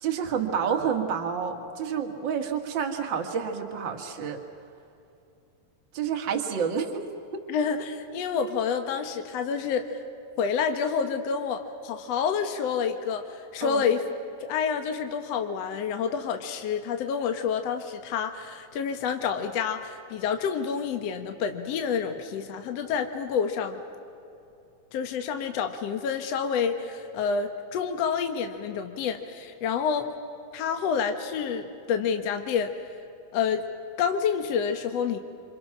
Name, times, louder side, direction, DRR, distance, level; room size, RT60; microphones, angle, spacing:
voice 1, 0.0-4.4 5.9-7.4 13.6-13.9, right 7 dB, 40° right, 3 dB, 2.1 m, -29 dB
voice 2, 7.5-10.0 10.4-14.0 14.4-23.8 24.9-30.1 30.5-32.7 33.3-33.6 34.0-35.2, left 6 dB, 65° left, 6 dB, 1.7 m, -28 dB
28.5 x 26.5 x 6.1 m, 2.7 s
omnidirectional pair, 4.4 m